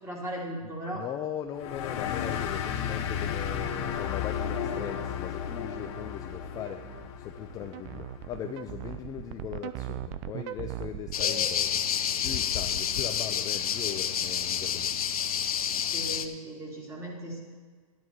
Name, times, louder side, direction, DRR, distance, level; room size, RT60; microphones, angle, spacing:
voice 1, 0.0-1.1 11.2-11.3 15.8-17.4, right 1 dB, 15° right, -3 dB, 3.3 m, -37 dB
voice 2, 0.9-6.8 7.2-11.8 12.2-15.0, left 10 dB, 20° left, 6 dB, 0.5 m, -39 dB
sound 1, 1.6-8.7, left 8 dB, 50° left, 1.3 m, -34 dB
sound 2, 1.6-11.2, right 14 dB, 35° right, 0.5 m, -41 dB
sound 3, 11.1-16.3, left 8 dB, 75° left, 0.9 m, -29 dB
12.0 x 10.0 x 4.6 m, 1.5 s
hypercardioid pair, 130°, 19 cm